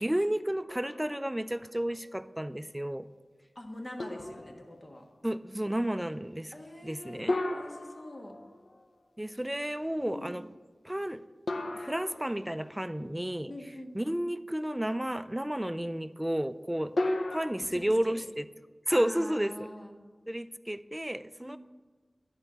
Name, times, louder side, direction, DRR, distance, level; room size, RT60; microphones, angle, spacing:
voice 1, 0.0-3.1 5.2-6.5 6.8-7.4 9.2-10.4 10.8-11.2 11.7-13.5 13.9-16.9 17.3-18.4 18.9-19.7 20.3-21.6, right 1 dB, 10° right, 13 dB, 0.3 m, -32 dB
sound 1, 0.7-1.6 2.1-2.2 4.0-4.9 7.3-8.9 11.5-12.8 17.0-17.5, left 1 dB, 85° left, 0.6 m, -35 dB
voice 2, 3.5-5.1 6.5-7.2 7.5-8.4 10.0-10.5 13.5-14.2 17.6-18.2 18.9-19.9 21.4-21.6, left 1 dB, 40° left, 1 dB, 1.4 m, -44 dB
11.0 x 4.5 x 6.9 m, 1.4 s
wide cardioid pair, 75°, 0 cm